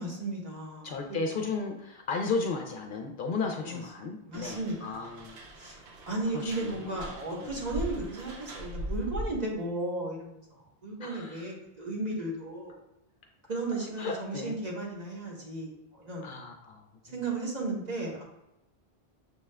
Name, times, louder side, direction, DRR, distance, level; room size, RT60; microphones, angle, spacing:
voice 1, 0.0-1.2 3.7-3.8 4.2-5.0 5.6-12.7 13.5-15.7 16.0-16.3 17.1-18.2, right 2 dB, 45° right, -3 dB, 1.0 m, -35 dB
voice 2, 0.8-5.4 6.3-7.1 7.4-7.6 11.0-11.5 14.0-14.6 16.2-16.8 17.1-17.2, left 4 dB, 60° left, 2 dB, 0.7 m, -34 dB
sound 1, 4.3-9.5, equal, 75° right, 0.9 m, -40 dB
6.3 x 2.3 x 3.3 m, 0.87 s
omnidirectional pair, 1.1 m